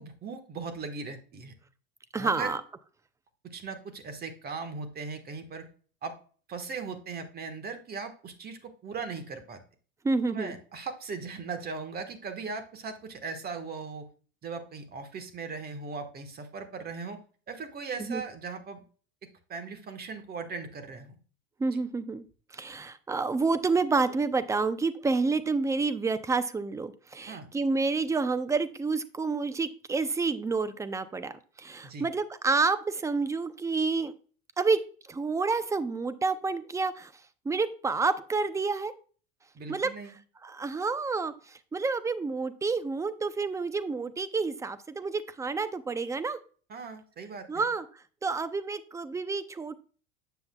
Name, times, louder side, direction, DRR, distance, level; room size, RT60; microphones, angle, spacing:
voice 1, 0.0-1.5 2.2-2.6 3.4-5.7 6.0-6.1 6.5-9.6 10.3-14.1 14.4-17.2 17.5-18.8 19.5-21.1 27.3-27.5 31.8-32.1 39.5-40.1 46.7-47.7, right 4 dB, 30° right, 8 dB, 1.4 m, -38 dB
voice 2, 2.1-2.6 10.0-10.6 18.0-18.2 21.6-22.3 22.5-34.1 34.6-34.8 35.1-37.1 37.5-38.9 39.7-39.9 40.4-46.4 47.5-47.8 48.2-49.7, right 4 dB, 10° right, 13 dB, 0.5 m, -29 dB
8.1 x 6.9 x 2.3 m, 0.40 s
supercardioid pair, 115°, 31 cm